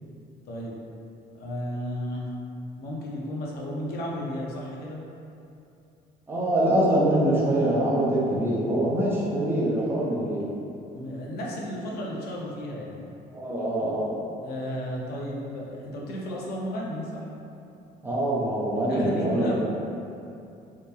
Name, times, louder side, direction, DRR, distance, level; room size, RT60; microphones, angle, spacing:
voice 1, 0.4-0.8 1.4-2.3 2.8-5.0 10.9-13.0 14.4-17.2 18.9-19.5, equal, 65° left, -4 dB, 0.6 m, -33 dB
voice 2, 6.3-10.5 13.4-14.1 18.0-19.5, right 1 dB, 15° right, -7 dB, 0.6 m, -24 dB
2.8 x 2.1 x 2.3 m, 2.6 s
cardioid pair, 110°, 17 cm